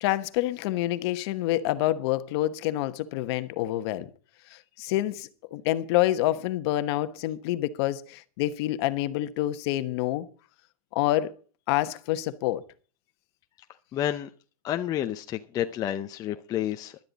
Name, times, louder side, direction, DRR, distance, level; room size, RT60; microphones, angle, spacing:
voice 1, 0.0-4.1 4.5-10.3 10.9-11.3 11.7-12.6, left 15 dB, 45° left, 1.1 m, -27 dB
voice 2, 13.9-14.3 14.6-17.0, left 11 dB, 20° left, 0.6 m, -30 dB
15.5 x 12.0 x 4.1 m
supercardioid pair, 160°, 19 cm